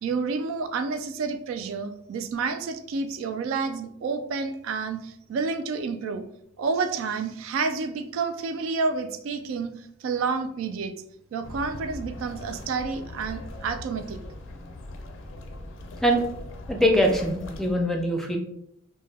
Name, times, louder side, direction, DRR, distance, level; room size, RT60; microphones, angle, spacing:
voice 1, 0.0-6.2 6.6-10.9 11.3-14.2, right 4 dB, 85° right, 8 dB, 0.3 m, -29 dB
sound 1, 11.4-17.8, left 2 dB, 75° left, 0.4 m, -40 dB
voice 2, 16.7-18.4, equal, ahead, 1 dB, 0.3 m, -22 dB
2.1 x 2.1 x 3.2 m, 0.72 s
head